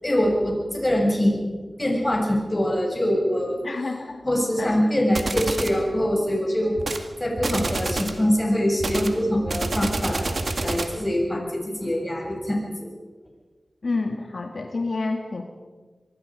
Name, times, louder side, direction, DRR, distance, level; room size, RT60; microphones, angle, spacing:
voice 1, 0.0-1.5 1.8-3.6 4.2-6.8 7.2-10.3 10.6-12.9, equal, 25° left, -1 dB, 7.6 m, -23 dB
voice 2, 3.6-4.2 4.6-4.7 13.8-15.4, left 3 dB, 70° left, 3 dB, 1.9 m, -28 dB
sound 1, 5.1-5.8 6.8-7.1 7.4-8.2 8.8-11.0, right 2 dB, 65° right, 2.1 m, -28 dB
24.5 x 23.5 x 5.2 m, 1.4 s
wide cardioid pair, 65°, 0 cm